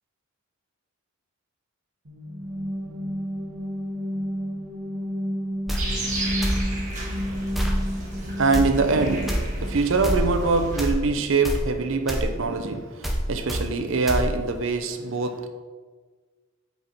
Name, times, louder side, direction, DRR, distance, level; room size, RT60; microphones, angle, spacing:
sound 1, 2.0-9.8, equal, 75° right, 1.3 m, -32 dB
sound 2, 5.7-5.8 6.4-6.6 7.5-7.8 8.5-8.7 9.3-9.4 10.0-10.2 10.8-11.0 11.4-11.6 12.1-12.3 13.0-13.2 13.5-13.6 14.1-14.2, equal, ahead, 0.6 m, -25 dB
sound 3, 5.8-10.9, right 1 dB, 35° right, 1.6 m, -32 dB
voice 1, 8.4-15.5, right 3 dB, 60° right, 7 dB, 0.6 m, -24 dB
8.1 x 4.4 x 4.1 m, 1.4 s
head